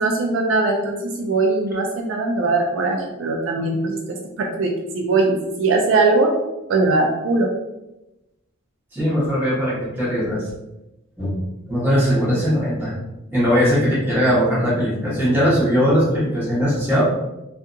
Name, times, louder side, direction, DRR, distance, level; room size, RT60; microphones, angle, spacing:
voice 1, 0.0-6.3 6.7-7.5, right 3 dB, 70° right, 2 dB, 0.4 m, -20 dB
voice 2, 8.9-10.5 11.2-11.4 11.7-12.9 13.3-17.0, equal, 10° right, -9 dB, 1.0 m, -19 dB
2.7 x 2.4 x 2.3 m, 0.95 s
head